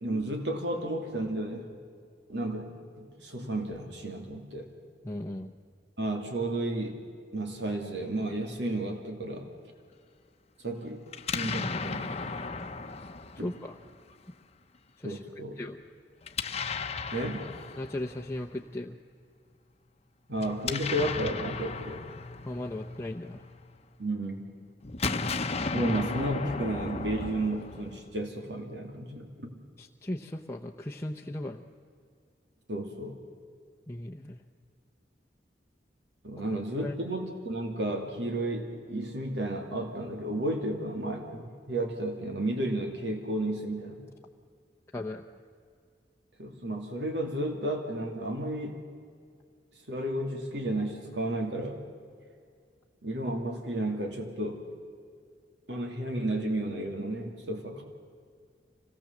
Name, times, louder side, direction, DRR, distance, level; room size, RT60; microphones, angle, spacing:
voice 1, 0.0-1.7 2.3-2.7 3.0-4.7 6.0-7.0 7.3-9.5 10.6-11.0 11.3-12.3 13.4-13.5 15.0-15.6 17.1-17.5 20.3-22.0 24.0-24.5 25.7-29.5 32.7-33.2 36.2-44.0 46.4-48.8 49.9-51.8 53.0-54.6 55.7-57.8, right 1 dB, 80° right, 3 dB, 2.6 m, -32 dB
voice 2, 5.0-5.5 13.4-13.8 15.0-15.2 15.6-15.8 17.8-19.0 22.5-23.4 29.8-31.6 33.9-34.4 36.5-36.9 44.9-45.2, left 1 dB, 15° left, 0 dB, 0.8 m, -37 dB
Explosion, 11.1-14.1 16.2-18.5 20.3-23.8 24.8-28.2, left 4 dB, 40° left, 0.9 m, -35 dB
25.0 x 18.0 x 7.3 m, 2.2 s
head